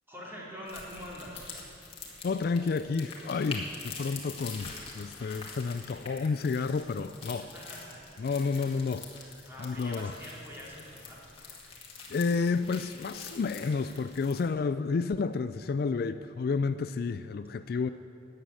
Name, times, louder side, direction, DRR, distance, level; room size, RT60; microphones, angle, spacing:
voice 1, 0.1-1.5 7.5-8.2 9.4-11.2, equal, 10° right, -5 dB, 3.1 m, -44 dB
sound 1, 0.7-14.5, left 4 dB, 30° left, 2.2 m, -45 dB
voice 2, 2.2-7.5 8.2-10.1 12.1-17.9, left 4 dB, 50° left, 12 dB, 0.3 m, -31 dB
13.0 x 8.9 x 9.3 m, 2.7 s
head